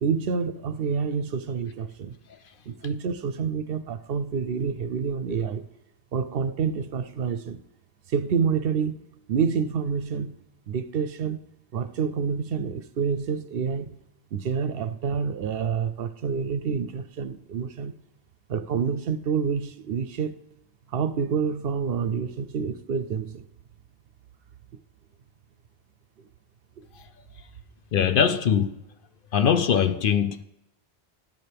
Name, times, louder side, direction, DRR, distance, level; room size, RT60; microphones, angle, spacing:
voice 1, 0.0-2.1 2.7-5.6 6.1-7.6 8.1-10.4 10.7-11.4 11.7-14.0 14.3-18.0 18.5-20.3 20.9-23.4 26.2-26.3 26.8-26.9, right 6 dB, 65° right, 0.8 m, -28 dB
voice 2, 27.9-28.8 29.3-30.4, left 7 dB, 60° left, 0.6 m, -22 dB
16.5 x 9.6 x 3.4 m
omnidirectional pair, 1.1 m